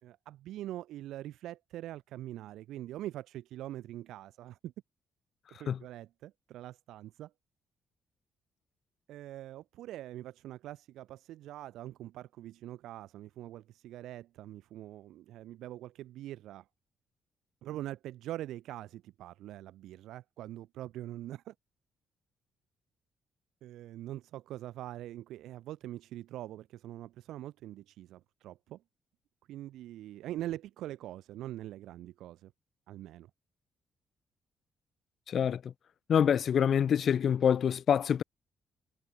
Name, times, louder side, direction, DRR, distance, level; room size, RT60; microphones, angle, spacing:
voice 1, 0.0-4.7 5.5-7.3 9.1-16.7 17.6-21.5 23.6-28.8 29.5-32.5 32.9-33.3, right 14 dB, 85° right, 2.6 m, -43 dB
voice 2, 35.3-35.7 36.1-38.2, left 8 dB, 55° left, 0.4 m, -26 dB
cardioid pair, 90°, 0 cm